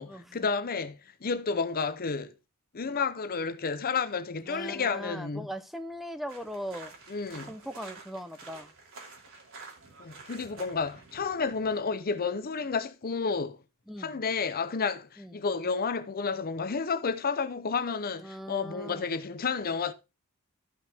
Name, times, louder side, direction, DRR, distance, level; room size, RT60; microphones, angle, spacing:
voice 1, 0.0-2.3 2.7-5.5 7.1-7.5 10.0-13.6 14.0-19.9, left 5 dB, 45° left, 0.6 m, -31 dB
voice 2, 4.5-6.9 7.5-8.7 13.9-14.2 15.2-15.3 18.2-19.1, equal, ahead, 0.6 m, -39 dB
sound 1, 6.3-11.8, right 3 dB, 65° right, 2.6 m, -49 dB
13.5 x 5.7 x 3.4 m
head